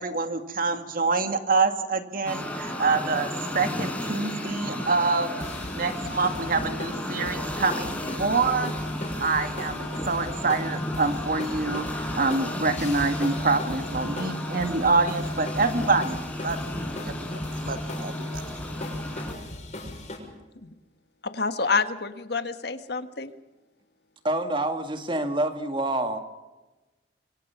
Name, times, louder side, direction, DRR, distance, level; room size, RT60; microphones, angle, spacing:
voice 1, 0.0-5.4 5.7-8.7 9.2-16.8 17.1-18.4, right 4 dB, 55° right, 7 dB, 2.0 m, -26 dB
sound 1, 2.3-19.3, left 1 dB, 10° left, 4.0 m, -33 dB
sound 2, 5.4-20.2, left 1 dB, 45° left, 6.5 m, -39 dB
voice 2, 21.2-23.3, left 4 dB, 65° left, 9 dB, 1.4 m, -28 dB
voice 3, 24.2-26.2, right 1 dB, 30° right, 7 dB, 2.0 m, -27 dB
26.0 x 24.5 x 5.9 m, 1.1 s
head